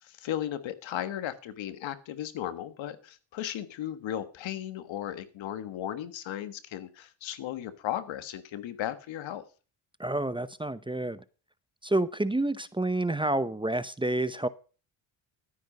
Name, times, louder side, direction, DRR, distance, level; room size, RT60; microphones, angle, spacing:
voice 1, 0.0-9.4, left 11 dB, 80° left, 1.5 m, -36 dB
voice 2, 10.0-11.2 11.8-14.5, right 2 dB, 10° right, 0.7 m, -29 dB
12.0 x 10.0 x 5.4 m
cardioid pair, 75°, 46 cm